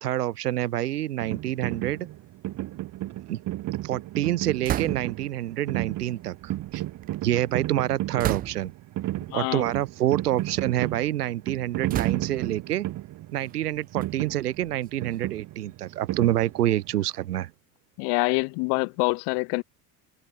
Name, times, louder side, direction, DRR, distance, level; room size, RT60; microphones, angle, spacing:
voice 1, 0.0-2.1 3.3-3.4 3.8-6.8 7.2-8.7 9.3-12.9 13.3-17.5, right 13 dB, 70° right, 2.2 m, -27 dB
sound 1, 1.2-17.0, right 16 dB, 40° right, 1.0 m, -33 dB
sound 2, 4.6-5.3 6.2-7.3 8.2-8.9 9.7-9.9 10.4-11.1 11.9-12.6 13.4-15.3, right 12 dB, 20° right, 0.4 m, -34 dB
voice 2, 9.3-9.6 18.0-19.6, left 37 dB, 55° left, 1.9 m, -25 dB
figure-of-eight pair, 60°, 48 cm